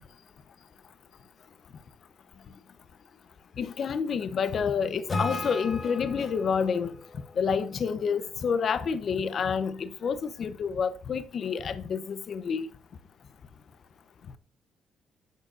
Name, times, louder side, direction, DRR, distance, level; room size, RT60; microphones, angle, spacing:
voice 1, 3.6-6.9 7.4-12.7, left 6 dB, 55° left, 0.8 m, -29 dB
Acoustic guitar / Strum, 5.1-8.5, left 2 dB, 30° left, 3.1 m, -37 dB
10.5 x 6.4 x 2.6 m
cardioid pair, 90°, 0 cm